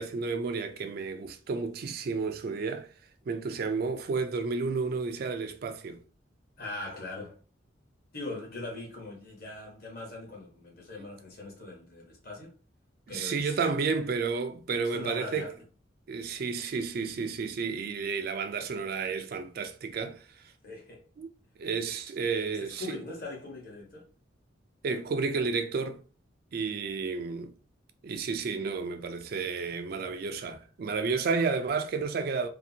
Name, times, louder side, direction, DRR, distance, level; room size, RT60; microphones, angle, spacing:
voice 1, 0.0-2.9 3.3-6.0 13.1-15.5 16.1-20.2 21.2-21.3 21.6-23.0 24.8-26.0 26.5-27.5 28.0-32.5, right 4 dB, 50° right, 0.3 m, -31 dB
voice 2, 6.6-7.4 8.1-12.5 13.1-13.9 14.8-15.5 20.6-21.1 21.8-21.9 22.5-24.1, left 2 dB, 50° left, 1.1 m, -41 dB
2.6 x 2.5 x 2.7 m
head